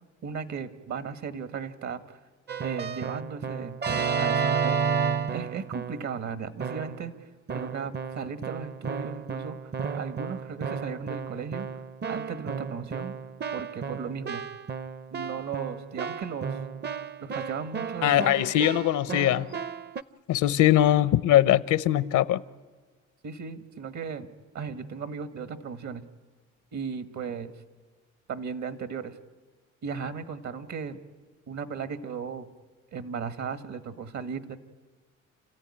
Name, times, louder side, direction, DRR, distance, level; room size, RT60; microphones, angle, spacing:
voice 1, 0.2-2.2 2.6-3.8 4.2-4.8 5.3-7.1 7.5-9.6 9.9-11.7 12.1-13.1 13.5-14.4 15.1-16.6 17.2-18.3 23.2-24.3 24.5-26.0 26.7-27.5 28.3-29.2 29.8-31.0 31.5-32.5 32.9-34.6, right 6 dB, 65° right, 1.7 m, -36 dB
Keyboard (musical), 2.5-6.1 6.6-7.1 7.5-20.0, right 6 dB, 35° right, 0.6 m, -32 dB
voice 2, 18.0-19.5 20.3-22.4, left 12 dB, 80° left, 0.8 m, -21 dB
29.0 x 14.5 x 9.9 m
cardioid pair, 90°, 30 cm